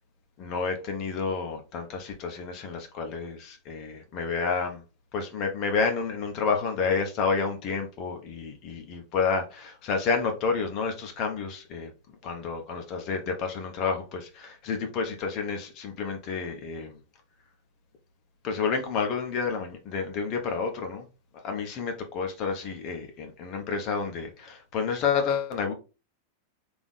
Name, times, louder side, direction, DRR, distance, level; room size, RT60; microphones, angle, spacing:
voice 1, 0.4-4.8 5.1-11.9 12.2-17.0 18.4-21.0 21.4-25.7, left 5 dB, 40° left, 1.0 m, -30 dB
3.6 x 3.0 x 4.0 m
figure-of-eight pair, 90°, 0 cm